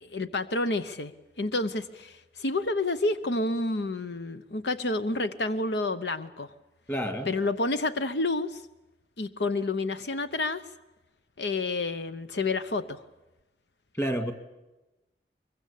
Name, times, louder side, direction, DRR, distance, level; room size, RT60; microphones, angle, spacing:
voice 1, 0.0-1.1 1.4-6.5 7.3-8.6 9.2-10.6 11.4-13.0, left 2 dB, 75° left, 11 dB, 0.9 m, -29 dB
voice 2, 6.9-7.3 13.9-14.3, equal, 15° left, 7 dB, 2.0 m, -29 dB
23.5 x 22.5 x 8.5 m, 1.0 s
head